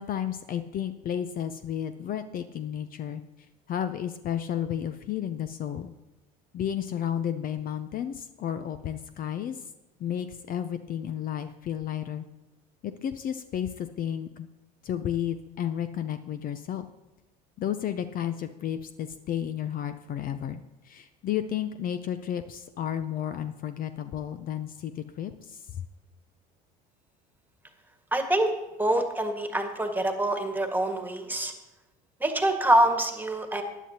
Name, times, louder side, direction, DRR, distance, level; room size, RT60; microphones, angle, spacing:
voice 1, 0.0-3.2 3.7-5.9 6.5-9.6 10.0-12.2 12.8-14.5 14.8-16.9 17.6-25.8, left 9 dB, 45° left, 10 dB, 0.6 m, -32 dB
voice 2, 28.1-28.5 28.8-31.5 32.2-33.6, right 1 dB, 10° right, 5 dB, 1.6 m, -25 dB
15.5 x 10.0 x 2.9 m, 1.0 s
hypercardioid pair, 80°, 20 cm